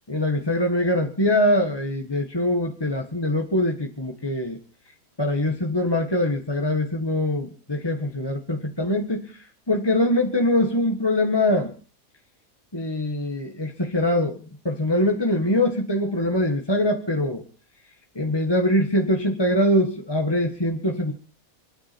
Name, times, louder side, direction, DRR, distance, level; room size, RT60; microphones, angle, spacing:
voice 1, 0.1-4.6 5.2-11.7 12.7-14.4 14.6-17.4 18.1-21.1, left 1 dB, 20° left, 3 dB, 1.7 m, -23 dB
28.5 x 9.9 x 4.4 m, 0.38 s
omnidirectional pair, 1.5 m